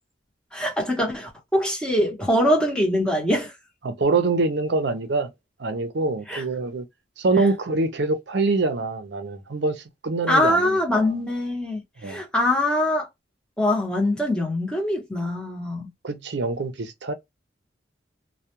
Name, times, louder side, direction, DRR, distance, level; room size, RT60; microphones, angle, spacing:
voice 1, 0.5-3.5 6.3-6.4 10.3-13.1 13.6-15.9, left 1 dB, 5° left, 0.9 m, -23 dB
voice 2, 3.8-5.3 5.6-6.8 7.2-11.1 12.0-12.2 16.0-17.1, right 3 dB, 65° right, 0.5 m, -25 dB
2.2 x 2.1 x 2.8 m
head